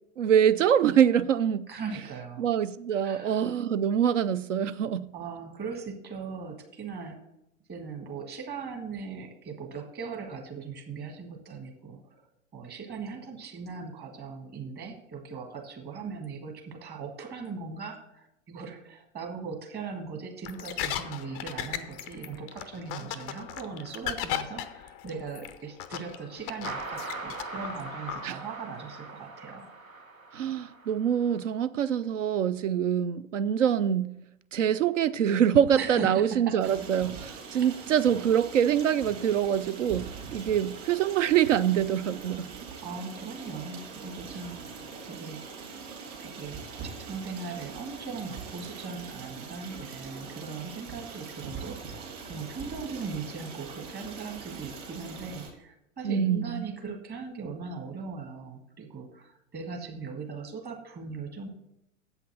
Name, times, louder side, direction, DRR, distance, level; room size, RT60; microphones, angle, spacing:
voice 1, 0.2-1.7 2.4-5.1 28.2-28.4 30.3-34.1 34.5-42.5 56.0-56.6, right 9 dB, 70° right, 0.5 m, -25 dB
voice 2, 1.7-2.5 3.0-3.5 5.1-7.2 7.7-12.0 12.5-29.7 35.7-36.9 37.5-37.7 42.8-44.6 45.1-45.4 46.2-61.5, right 5 dB, 25° right, 1.6 m, -39 dB
sound 1, 20.4-28.3, left 11 dB, 20° left, 0.3 m, -37 dB
sound 2, 26.6-31.4, right 3 dB, 90° right, 1.0 m, -41 dB
Stream, 36.6-55.5, right 5 dB, 45° right, 3.3 m, -42 dB
7.9 x 5.8 x 7.4 m
figure-of-eight pair, 90°, 39 cm